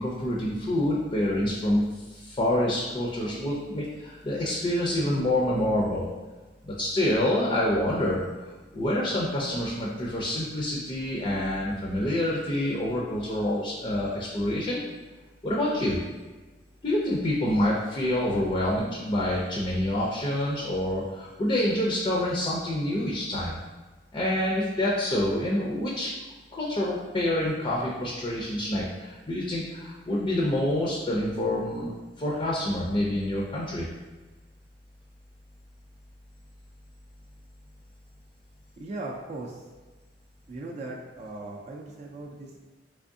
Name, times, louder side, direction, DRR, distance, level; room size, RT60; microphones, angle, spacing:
voice 1, 0.0-1.8 2.1-6.1 6.6-8.2 8.7-14.8 15.4-16.0 16.8-23.6 24.1-26.1 26.5-31.9 32.2-33.9, left 1 dB, 30° left, -4 dB, 0.5 m, -27 dB
voice 2, 38.8-39.6 40.5-42.7, right 2 dB, 40° right, -1 dB, 0.4 m, -38 dB
3.5 x 3.3 x 2.6 m, 1.3 s
head